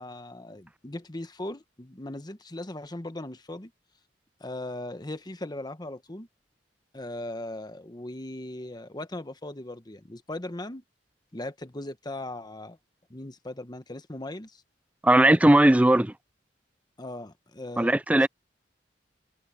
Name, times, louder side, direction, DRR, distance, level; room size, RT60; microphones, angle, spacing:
voice 1, 0.0-3.7 4.4-6.3 6.9-10.8 11.3-12.8 13.1-14.6 17.0-18.3, left 1 dB, 25° left, 1.1 m, -38 dB
voice 2, 15.0-16.1 17.8-18.3, right 1 dB, 10° right, 0.4 m, -18 dB
head